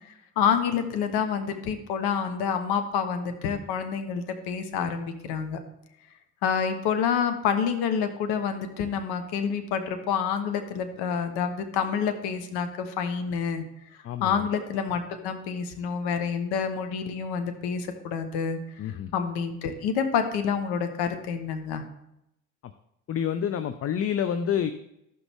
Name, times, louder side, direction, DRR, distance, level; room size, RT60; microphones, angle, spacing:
voice 1, 0.0-5.6 6.4-13.6 14.2-21.8, left 7 dB, 65° left, 8 dB, 1.2 m, -28 dB
voice 2, 14.0-14.5 18.8-19.1 23.1-24.7, left 8 dB, 35° left, 11 dB, 0.6 m, -28 dB
14.0 x 6.0 x 3.6 m, 0.82 s
hypercardioid pair, 60°, 42 cm